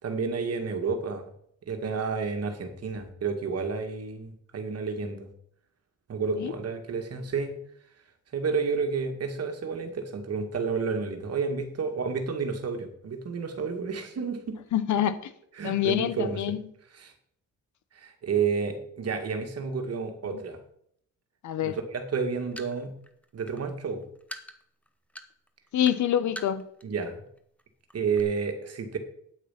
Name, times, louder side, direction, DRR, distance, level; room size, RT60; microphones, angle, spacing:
voice 1, 0.0-1.3 1.7-5.3 6.1-7.5 8.3-14.6 15.6-16.4 16.9-17.1 18.0-20.6 21.6-22.9 23.3-24.0 26.8-27.1 27.9-29.0, right 5 dB, 50° right, 2.2 m, -30 dB
voice 2, 14.7-15.3 15.6-16.6 20.3-20.4 21.4-21.8 25.7-26.6, left 10 dB, 65° left, 1.0 m, -26 dB
sound 1, 22.2-27.1 27.4-27.6 27.9-28.2, equal, 5° left, 1.1 m, -43 dB
9.2 x 8.5 x 5.8 m
cardioid pair, 110°, 32 cm